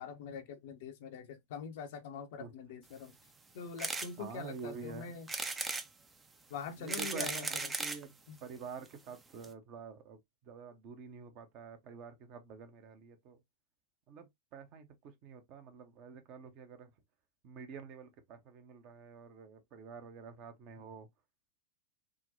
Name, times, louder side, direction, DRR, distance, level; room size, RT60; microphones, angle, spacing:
voice 1, 0.0-3.1 3.5-5.3 6.5-7.7 8.3-8.4, left 6 dB, 50° left, 0.6 m, -44 dB
sound 1, 3.8-4.1 4.6-4.7 5.3-5.9 6.6-8.0 8.9-9.0 9.1-9.2 9.4-9.5, right 3 dB, 15° right, 0.5 m, -37 dB
voice 2, 4.2-5.1 6.8-8.1 8.4-10.2 10.5-13.4 14.1-16.9 17.4-21.1, right 6 dB, 40° right, 0.8 m, -48 dB
3.7 x 2.2 x 2.6 m
figure-of-eight pair, 90°, 0 cm